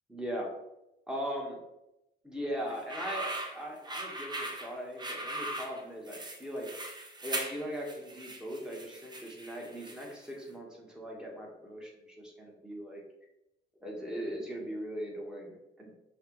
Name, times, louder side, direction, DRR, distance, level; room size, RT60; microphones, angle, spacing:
voice 1, 0.1-0.5 1.1-1.6 2.2-6.7 7.2-13.0 13.8-15.9, equal, 5° right, -2 dB, 1.3 m, -39 dB
sound 1, 2.7-10.3, right 1 dB, 20° right, 0.8 m, -39 dB
5.7 x 2.5 x 3.0 m, 0.90 s
cardioid pair, 90°, 20 cm